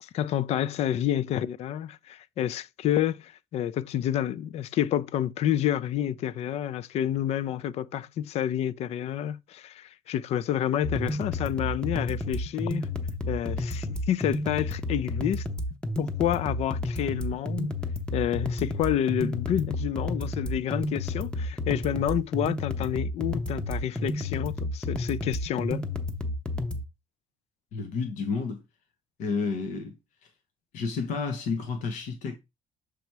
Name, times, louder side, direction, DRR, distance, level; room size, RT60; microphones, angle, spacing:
voice 1, 0.0-12.9 13.3-15.4 16.0-17.7 18.1-25.9, left 11 dB, 55° left, 0.4 m, -29 dB
sound 1, 10.8-26.8, left 1 dB, 5° left, 0.7 m, -31 dB
voice 2, 27.7-28.6 29.2-29.9 30.2-30.3 30.7-32.4, left 4 dB, 80° left, 1.1 m, -31 dB
6.9 x 3.0 x 4.6 m
cardioid pair, 145°, 13 cm